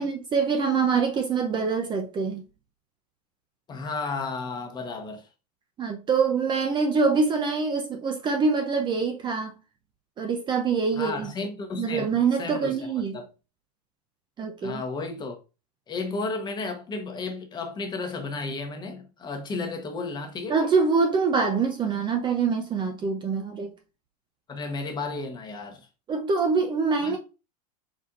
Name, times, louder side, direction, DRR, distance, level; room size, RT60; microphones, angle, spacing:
voice 1, 0.0-2.4 5.8-9.5 10.2-11.3 11.8-13.2 14.4-14.8 20.5-23.7 26.1-27.2, right 5 dB, 20° right, 0.6 m, -25 dB
voice 2, 3.7-5.3 10.9-12.7 13.1-13.2 14.6-15.4 15.9-20.6 24.5-25.9 27.0-27.2, left 3 dB, 20° left, 1.1 m, -33 dB
4.3 x 4.3 x 2.5 m
hypercardioid pair, 125°, 21 cm